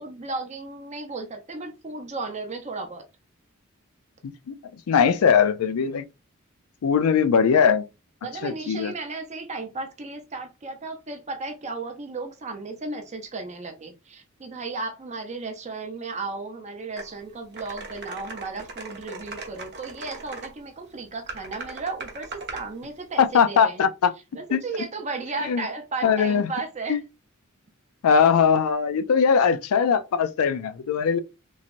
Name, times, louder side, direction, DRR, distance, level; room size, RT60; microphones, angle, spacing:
voice 1, 0.0-3.0 8.2-23.8 24.3-27.0, right 3 dB, 30° right, 0.6 m, -34 dB
voice 2, 4.2-4.5 4.9-6.0 6.8-7.8 8.4-8.9 23.2-24.1 24.5-24.6 25.5-25.6 26.0-26.5 26.9-27.0 28.0-31.2, left 6 dB, 85° left, 0.4 m, -20 dB
sound 1, 17.0-17.1 17.5-20.5 21.3-22.7, right 3 dB, 50° right, 0.9 m, -39 dB
3.1 x 2.8 x 2.5 m
head